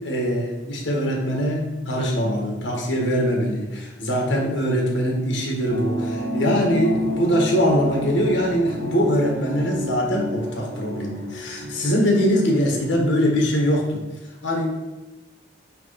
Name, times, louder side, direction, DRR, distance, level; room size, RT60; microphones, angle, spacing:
voice 1, 0.0-14.0 14.4-14.7, equal, 90° left, 0 dB, 1.6 m, -22 dB
sound 1, 5.7-13.1, equal, 45° right, 1.1 m, -31 dB
8.5 x 3.2 x 4.2 m, 1.1 s
head